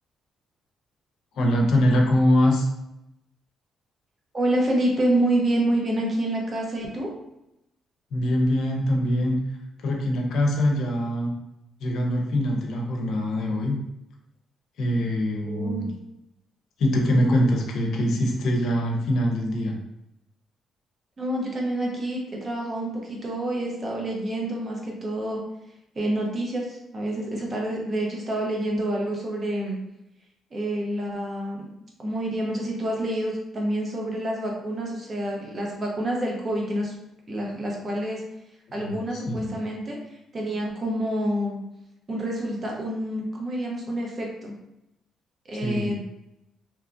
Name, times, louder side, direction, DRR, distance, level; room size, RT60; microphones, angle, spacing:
voice 1, 1.3-2.7 8.1-9.4 9.8-11.3 11.8-13.8 14.8-15.9 16.8-19.8 38.8-39.5 45.6-45.9, left 1 dB, 75° left, 0 dB, 0.5 m, -23 dB
voice 2, 4.3-7.1 15.4-15.9 21.2-25.4 25.9-29.8 30.5-31.7 32.0-36.9 37.3-38.2 38.7-41.6 42.1-44.5 45.4-46.0, right 1 dB, 35° right, -2 dB, 0.8 m, -28 dB
2.8 x 2.4 x 2.5 m, 0.87 s
cardioid pair, 90°, 0 cm